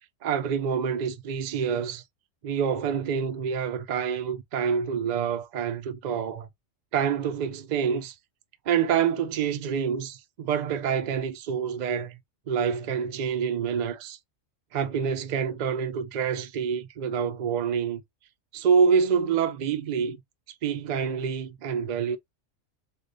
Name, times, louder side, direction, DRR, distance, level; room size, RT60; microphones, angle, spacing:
voice 1, 0.2-2.0 2.4-6.5 6.9-8.1 8.7-12.2 12.5-14.2 14.7-18.0 18.5-20.2 20.6-22.2, right 7 dB, 55° right, 0.5 m, -27 dB
3.3 x 2.3 x 3.8 m
omnidirectional pair, 1.3 m